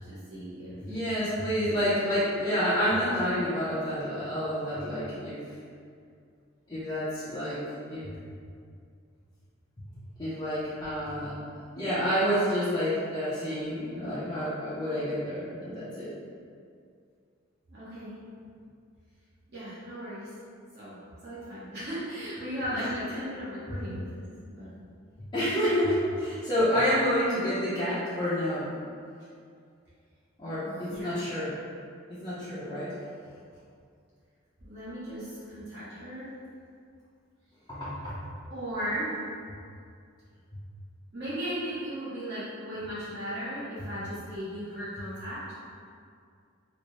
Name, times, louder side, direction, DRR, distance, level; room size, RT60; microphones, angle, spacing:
voice 1, 0.1-0.8 17.7-18.1 19.5-20.3 20.7-21.0 21.2-24.7 30.6-31.2 34.6-36.3 38.5-39.2 41.1-45.4, equal, 55° right, -12 dB, 1.2 m, -36 dB
voice 2, 0.8-5.4 6.7-7.6 7.9-8.1 10.2-11.3 11.8-16.1 22.7-22.9 23.1-23.3 23.7-23.8 25.3-28.7 30.4-31.6 32.1-32.9 37.7-38.2, equal, 20° left, -14 dB, 0.7 m, -29 dB
4.0 x 2.1 x 3.2 m, 2.3 s
head